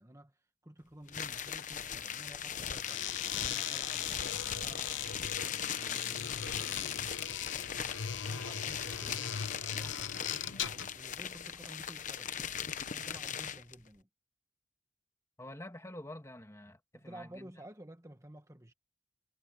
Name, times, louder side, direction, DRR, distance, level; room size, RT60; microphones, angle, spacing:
voice 1, 0.0-4.1 4.4-7.1 7.6-9.3 9.6-12.5 12.8-14.1 16.9-18.7, right 1 dB, 15° right, 1.8 m, -53 dB
sound 1, 1.1-13.7, left 8 dB, 45° left, 1.0 m, -40 dB
sound 2, 2.7-11.0, left 9 dB, 90° left, 0.9 m, -39 dB
voice 2, 15.4-17.5, left 1 dB, 15° left, 2.4 m, -47 dB
head